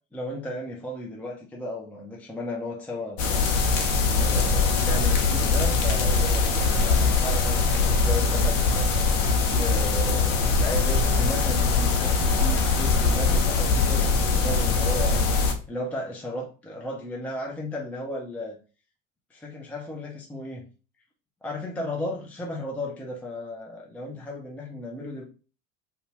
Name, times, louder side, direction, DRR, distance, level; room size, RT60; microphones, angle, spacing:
voice 1, 0.1-3.5 4.0-8.9 9.5-15.2 15.7-18.6 19.3-20.6 21.4-25.2, left 1 dB, 5° left, -2 dB, 0.5 m, -34 dB
sound 1, 3.2-15.5, left 4 dB, 55° left, 0.7 m, -22 dB
2.7 x 2.2 x 2.9 m, 0.35 s
hypercardioid pair, 70°, 39 cm